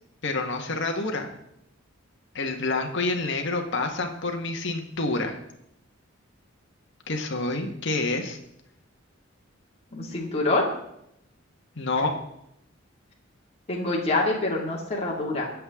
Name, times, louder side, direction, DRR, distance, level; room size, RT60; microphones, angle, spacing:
voice 1, 0.2-1.3 2.3-5.4 7.1-8.4 11.7-12.1, left 3 dB, 65° left, 3 dB, 1.7 m, -28 dB
voice 2, 9.9-10.6 13.7-15.5, left 2 dB, 30° left, -3 dB, 2.5 m, -26 dB
23.0 x 7.8 x 3.8 m, 0.77 s
head